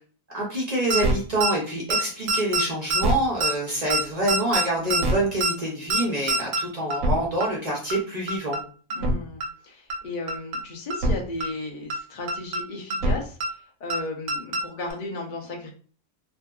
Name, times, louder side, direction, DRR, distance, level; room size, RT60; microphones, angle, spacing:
voice 1, 0.3-8.6, right 1 dB, 45° right, -3 dB, 0.5 m, -26 dB
sound 1, 0.9-1.1 1.4-1.5 1.9-2.0 2.3-2.6 2.9-3.1 3.4-3.5 3.9-4.0 4.3-4.6 4.9-5.1 5.4-5.5 5.9-6.0 6.3-6.6 6.9-7.1 7.4-7.5 7.9-8.0 8.3-8.6 8.9-9.1 9.4-9.5 9.9-10.0 10.3-10.6 10.9-11.1 11.4-11.5 11.9-12.0 12.3-12.6 12.9-13.1 13.4-13.5 13.9-14.0 14.3-14.6 14.9-15.0, right 1 dB, 70° right, 0.9 m, -23 dB
voice 2, 8.9-15.7, left 2 dB, 65° left, 1 dB, 0.5 m, -35 dB
2.6 x 2.5 x 2.3 m, 0.41 s
omnidirectional pair, 1.6 m